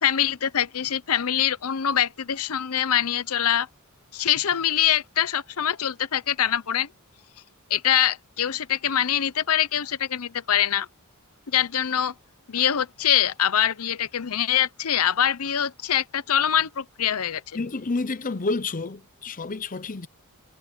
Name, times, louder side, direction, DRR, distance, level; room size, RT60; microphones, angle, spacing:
voice 1, 0.0-3.7 4.1-6.9 7.7-10.9 11.5-12.1 12.5-17.4, left 10 dB, 75° left, 0.8 m, -24 dB
voice 2, 17.5-20.1, left 3 dB, 40° left, 0.8 m, -29 dB
head